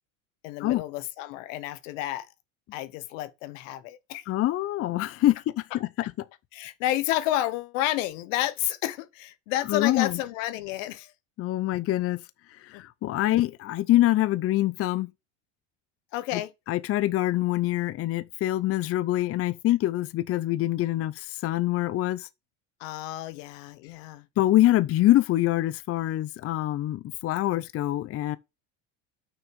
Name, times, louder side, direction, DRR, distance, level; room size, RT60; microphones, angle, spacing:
voice 1, 0.4-2.3 2.7-4.2 6.0-6.1 6.5-11.1 12.7-12.8 16.1-16.5 22.8-24.3, left 14 dB, 85° left, 1.1 m, -31 dB
voice 2, 4.3-5.4 9.7-10.2 11.4-12.2 12.6-15.1 16.3-16.4 16.7-22.3 24.4-28.4, left 15 dB, 40° left, 0.6 m, -25 dB
6.1 x 6.1 x 5.3 m
supercardioid pair, 120°, 37 cm